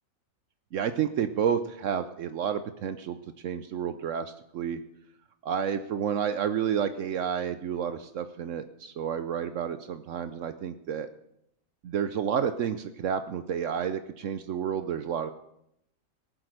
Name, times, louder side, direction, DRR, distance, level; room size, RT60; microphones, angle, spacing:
voice 1, 0.7-3.2 3.4-4.8 5.4-11.1 11.8-15.3, right 8 dB, 70° right, 10 dB, 1.0 m, -30 dB
18.5 x 7.6 x 6.5 m, 0.79 s
omnidirectional pair, 1.4 m